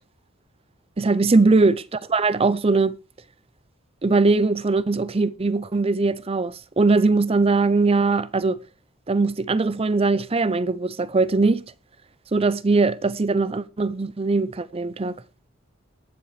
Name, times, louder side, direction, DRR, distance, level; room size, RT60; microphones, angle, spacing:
voice 1, 1.0-2.9 4.0-8.6 9.1-11.6 12.3-15.2, right 3 dB, 30° right, 0.6 m, -21 dB
21.5 x 7.5 x 3.3 m
head